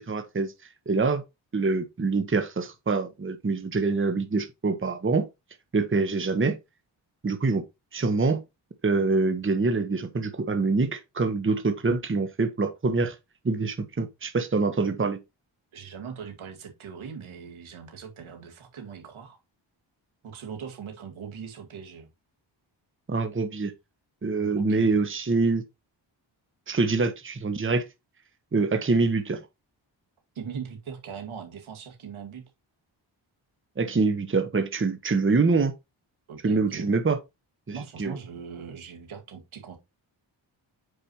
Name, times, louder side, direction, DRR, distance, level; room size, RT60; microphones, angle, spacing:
voice 1, 0.1-0.5 0.9-1.2 1.5-5.2 5.7-6.6 7.2-7.6 7.9-8.4 8.8-13.2 13.4-15.2 23.1-23.7 24.2-25.6 26.7-27.8 28.5-29.5 33.8-35.7 36.4-37.2 37.7-38.2, right 3 dB, 25° right, 1.1 m, -25 dB
voice 2, 15.7-19.4 20.2-22.1 24.4-24.9 30.4-32.5 36.3-36.9 37.7-39.8, right 6 dB, 80° right, 2.2 m, -40 dB
8.5 x 4.9 x 3.0 m
cardioid pair, 55°, 47 cm